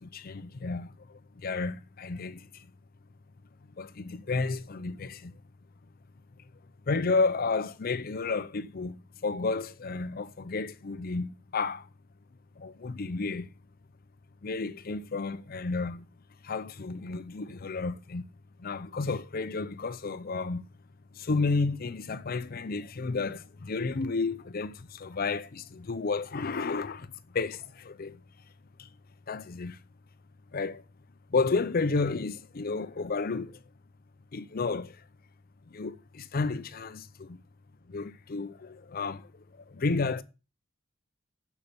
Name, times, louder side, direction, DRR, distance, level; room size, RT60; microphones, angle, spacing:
voice 1, 0.0-2.7 3.8-5.3 6.9-11.9 12.6-13.5 14.4-16.1 16.4-18.3 18.6-20.6 21.1-28.2 28.8-28.9 29.3-29.8 30.5-30.8 31.3-33.6 34.3-35.0 35.7-37.4 37.9-40.2, left 4 dB, 45° left, 0.5 m, -32 dB
7.3 x 6.6 x 6.8 m
head